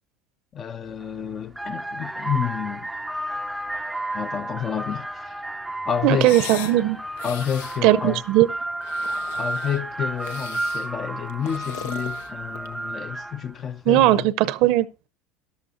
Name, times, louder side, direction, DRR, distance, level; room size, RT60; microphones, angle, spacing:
voice 1, 0.5-2.9 4.1-5.3 5.9-6.3 7.2-8.2 9.4-14.3, left 8 dB, 40° left, 0.7 m, -29 dB
sound 1, 0.8-1.1 1.5-13.6, right 1 dB, 5° right, 0.5 m, -32 dB
voice 2, 6.0-7.0 7.8-8.5 13.9-14.9, right 14 dB, 65° right, 0.7 m, -18 dB
sound 2, 6.2-6.8 7.1-7.8 8.7-9.8 10.2-10.9 11.3-12.8, left 9 dB, 80° left, 0.7 m, -38 dB
14.0 x 11.5 x 2.6 m
supercardioid pair, 95°, 0 cm